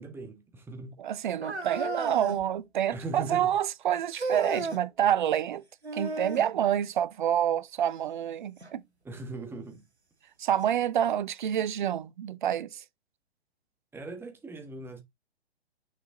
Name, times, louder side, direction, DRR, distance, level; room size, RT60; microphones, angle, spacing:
voice 1, 0.0-1.0 2.9-3.5 9.0-9.8 13.9-15.0, right 3 dB, 5° right, 1.5 m, -39 dB
voice 2, 1.0-5.6 5.9-8.8 10.4-12.8, right 10 dB, 50° right, 0.7 m, -28 dB
sound 1, 1.4-2.4 4.1-4.8 5.8-6.5 8.6-8.7 9.5-9.6 10.6-10.7, right 3 dB, 80° right, 2.0 m, -34 dB
6.7 x 4.9 x 3.8 m
figure-of-eight pair, 115°, 32 cm